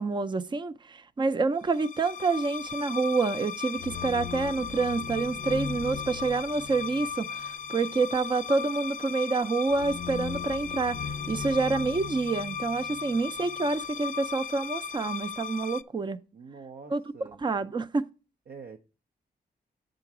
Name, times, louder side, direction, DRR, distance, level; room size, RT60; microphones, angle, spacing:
voice 1, 0.0-16.2 16.9-17.0 17.4-18.1, right 4 dB, 30° right, 0.5 m, -28 dB
sound 1, 1.7-15.8, left 7 dB, 55° left, 0.4 m, -36 dB
voice 2, 16.3-17.4 18.5-18.8, right 5 dB, 70° right, 0.7 m, -45 dB
8.2 x 3.9 x 5.9 m
cardioid pair, 90°, 16 cm